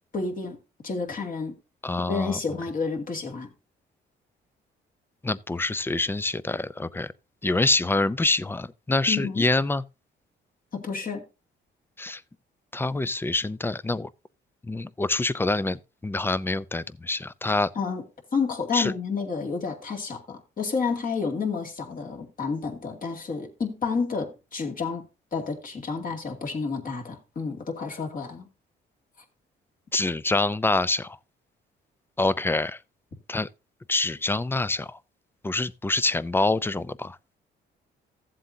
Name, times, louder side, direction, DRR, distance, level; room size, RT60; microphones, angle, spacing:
voice 1, 0.1-0.6 0.8-1.6 2.0-3.5 9.1-9.5 10.7-11.2 17.7-18.0 18.3-25.1 25.3-28.5, left 5 dB, 45° left, 2.4 m, -30 dB
voice 2, 1.8-2.4 5.2-7.1 7.4-9.8 12.0-12.2 12.7-14.1 14.7-17.7 18.7-18.9 29.9-31.2 32.2-32.8 33.3-33.5 33.9-35.0 35.4-37.2, left 2 dB, 10° left, 0.5 m, -26 dB
15.0 x 7.6 x 2.7 m
cardioid pair, 90°, 20 cm